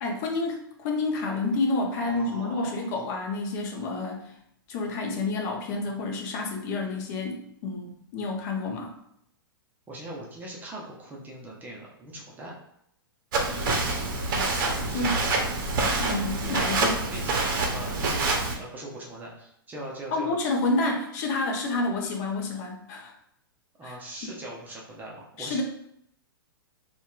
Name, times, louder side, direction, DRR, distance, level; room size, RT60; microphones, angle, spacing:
voice 1, 0.0-4.3 4.7-8.9 14.9-15.2 16.0-17.1 20.1-23.1 23.8-24.0 25.4-25.6, left 3 dB, 45° left, 1 dB, 0.5 m, -29 dB
voice 2, 1.9-2.9 9.9-12.6 14.9-15.5 17.1-20.3 23.8-25.6, right 1 dB, 15° right, -3 dB, 0.5 m, -41 dB
Walk footsteps, 13.3-18.5, right 3 dB, 55° right, 0.6 m, -26 dB
2.8 x 2.2 x 2.3 m, 0.74 s
hypercardioid pair, 120°, 13 cm